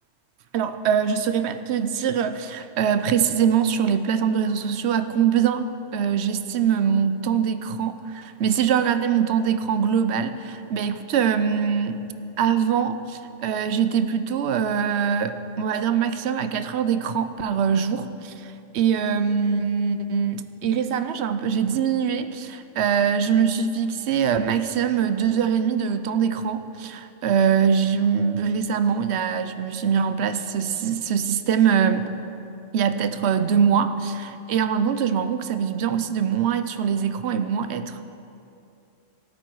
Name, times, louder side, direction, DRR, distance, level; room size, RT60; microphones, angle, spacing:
voice 1, 0.5-12.0 12.4-32.1 32.7-38.0, right 7 dB, 65° right, 11 dB, 0.9 m, -23 dB
17.5 x 8.8 x 4.6 m, 2.7 s
omnidirectional pair, 1.3 m